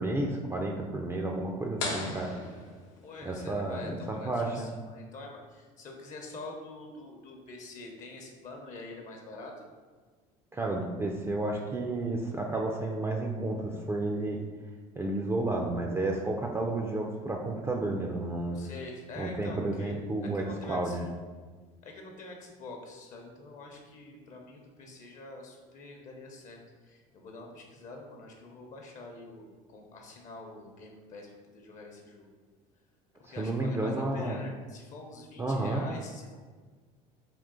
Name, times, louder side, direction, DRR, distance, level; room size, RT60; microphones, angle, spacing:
voice 1, 0.0-2.3 3.2-4.7 10.5-14.4 15.0-18.6 19.2-21.0 33.3-34.4 35.4-35.9, right 2 dB, 15° right, 1 dB, 0.4 m, -31 dB
sound 1, 1.8-3.5, left 3 dB, 85° left, 0.9 m, -37 dB
voice 2, 3.0-9.7 18.5-21.0 21.8-32.3 33.2-36.4, left 2 dB, 50° left, 1 dB, 0.8 m, -45 dB
3.7 x 2.4 x 3.7 m, 1.4 s
supercardioid pair, 90°, 17 cm